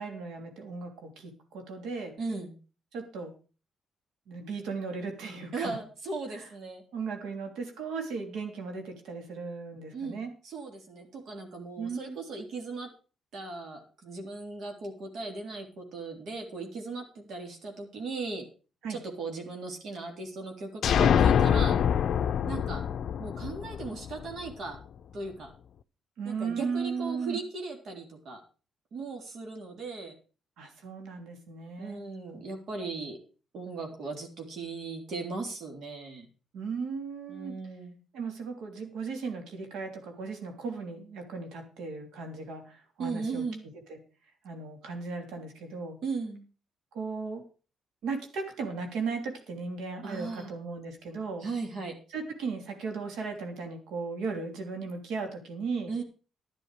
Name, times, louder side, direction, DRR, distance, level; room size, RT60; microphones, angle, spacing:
voice 1, 0.0-2.1 2.9-3.3 4.3-5.8 6.3-6.5 6.9-10.3 11.8-12.2 18.8-19.0 26.2-27.4 30.6-32.0 36.5-37.5 38.1-43.4 43.9-44.0 44.4-46.0 46.9-47.4 48.0-51.4 52.1-55.9, right 4 dB, 85° right, 4 dB, 3.1 m, -36 dB
voice 2, 2.2-2.5 5.5-6.8 9.9-12.9 13.3-18.4 18.9-21.8 22.5-22.8 23.2-24.8 25.1-25.5 26.3-28.4 28.9-30.1 31.8-33.2 33.5-36.3 37.3-38.0 43.0-43.6 46.0-46.4 50.0-50.5 51.4-51.9 55.9-56.0, right 3 dB, 65° right, 2 dB, 3.7 m, -37 dB
sound 1, 20.8-24.5, left 8 dB, 60° left, 0.5 m, -25 dB
11.0 x 10.5 x 5.0 m, 0.37 s
cardioid pair, 90°, 0 cm